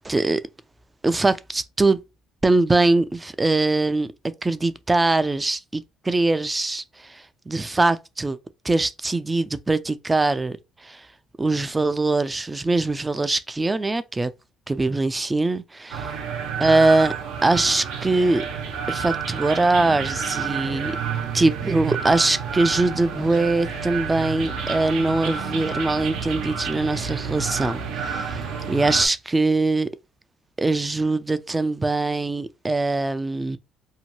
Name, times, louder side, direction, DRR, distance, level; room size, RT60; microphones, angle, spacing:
voice 1, 0.0-0.4 1.0-2.0 2.4-4.1 4.4-8.4 8.6-10.6 10.8-11.1 11.4-14.3 14.7-16.2 16.6-17.1 17.4-18.4 18.9-21.0 21.3-29.9 30.6-33.6, right 2 dB, 20° right, 0.3 m, -22 dB
sound 1, 15.9-29.1, right 6 dB, 80° right, 0.7 m, -30 dB
2.7 x 2.2 x 2.9 m
supercardioid pair, 85°, 0 cm